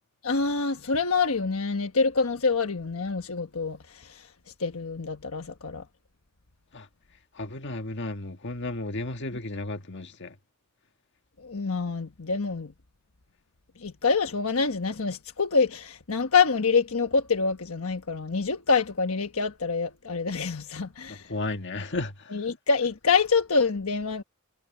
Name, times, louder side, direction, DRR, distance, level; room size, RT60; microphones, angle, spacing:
voice 1, 0.2-4.3 4.6-5.9 11.4-12.7 13.8-21.3 22.3-24.2, left 4 dB, 80° left, 1.2 m, -26 dB
voice 2, 7.4-10.3 21.1-22.1, left 2 dB, 55° left, 1.7 m, -33 dB
head